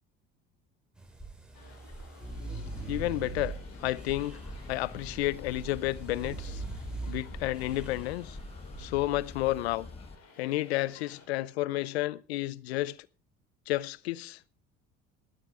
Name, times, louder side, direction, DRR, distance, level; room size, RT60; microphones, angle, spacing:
sound 1, 1.0-8.8, right 3 dB, 5° right, 4.1 m, -42 dB
sound 2, 1.5-11.3, left 4 dB, 55° left, 4.4 m, -56 dB
sound 3, 2.6-10.2, left 3 dB, 20° left, 1.1 m, -45 dB
voice 1, 2.9-4.4 4.7-6.6 7.1-8.4 8.8-9.9 10.4-13.0 13.7-14.4, left 17 dB, 90° left, 0.6 m, -31 dB
15.0 x 12.0 x 3.7 m
hypercardioid pair, 70°, 31 cm